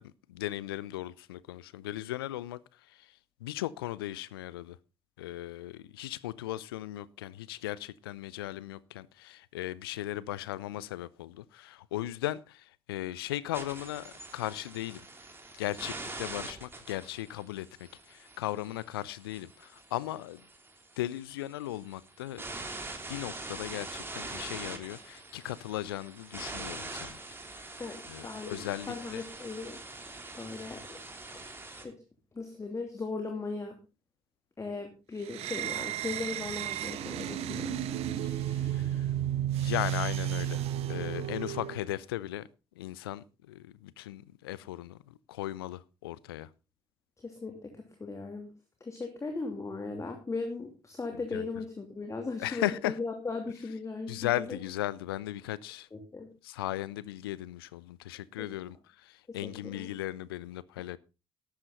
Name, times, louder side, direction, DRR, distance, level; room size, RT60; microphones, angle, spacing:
voice 1, 0.0-2.6 2.9-3.1 3.4-4.8 5.2-15.0 15.6-20.4 21.0-22.4 23.1-27.2 28.1-29.2 38.2-39.1 39.6-40.6 40.9-42.5 42.8-46.5 51.3-51.5 52.4-53.0 54.1-55.9 56.4-61.0, left 15 dB, 70° left, 0.6 m, -37 dB
sound 1, 13.5-31.8, right 2 dB, 20° right, 3.1 m, -44 dB
voice 2, 27.8-28.6 28.9-29.8 30.3-31.0 31.3-31.6 31.8-32.0 32.3-33.8 34.6-37.8 47.2-48.5 48.8-54.6 55.9-56.3 58.4-58.5 59.3-59.9, left 3 dB, 25° left, 2.9 m, -38 dB
sound 2, 35.2-41.9, right 11 dB, 55° right, 1.1 m, -33 dB
13.0 x 11.5 x 3.9 m
figure-of-eight pair, 50°, 13 cm